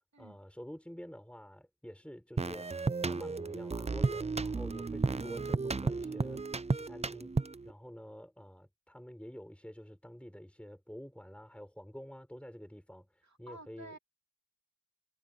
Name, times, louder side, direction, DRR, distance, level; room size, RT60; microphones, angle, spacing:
voice 1, 0.2-14.0, equal, 5° left, 5.0 m, -48 dB
sound 1, 2.4-7.7, right 4 dB, 15° right, 0.3 m, -33 dB
voice 2, 13.5-14.0, right 2 dB, 40° right, 2.7 m, -50 dB
wide cardioid pair, 100°, 44 cm